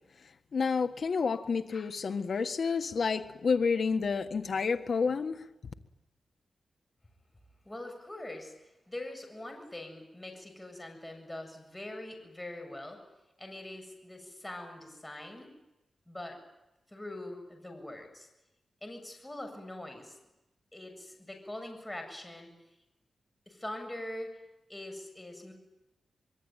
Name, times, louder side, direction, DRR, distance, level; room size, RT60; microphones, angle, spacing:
voice 1, 0.5-5.4, left 5 dB, 65° left, 1.6 m, -29 dB
voice 2, 7.6-13.0 13.4-15.5 16.1-16.4 16.9-18.3 18.8-20.2 20.7-22.5 23.5-24.4 24.7-25.5, left 1 dB, 15° left, 7.3 m, -43 dB
25.5 x 23.0 x 9.2 m
wide cardioid pair, 85°, 0 cm